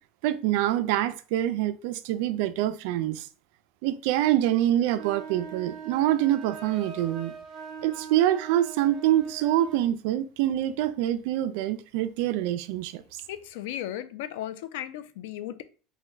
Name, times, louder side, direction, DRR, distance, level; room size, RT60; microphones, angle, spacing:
voice 1, 0.2-3.3 3.8-7.3 7.8-13.2, right 13 dB, 70° right, 0.3 m, -25 dB
sound 1, 4.9-9.9, right 6 dB, 30° right, 0.7 m, -42 dB
voice 2, 13.3-15.6, left 12 dB, 80° left, 0.4 m, -35 dB
4.1 x 2.2 x 3.4 m
supercardioid pair, 145°, 0 cm